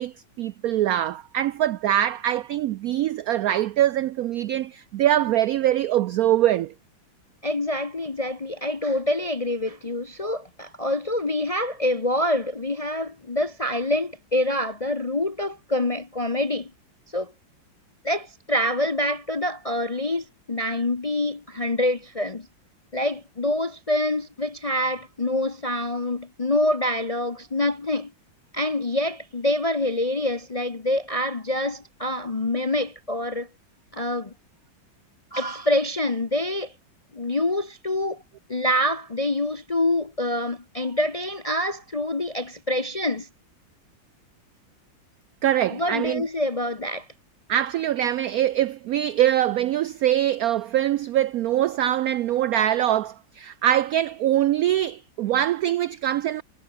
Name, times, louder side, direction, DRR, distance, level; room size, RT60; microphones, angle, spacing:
voice 1, 0.0-6.7 45.4-46.2 47.5-56.4, right 12 dB, 85° right, 0.7 m, -23 dB
voice 2, 7.4-16.7 17.1-17.3 18.0-22.5 22.9-28.1 28.5-33.5 33.9-34.3 35.3-36.7 37.1-38.2 38.5-43.3 45.7-47.1, left 1 dB, 35° left, 0.5 m, -26 dB
omnidirectional pair, 2.1 m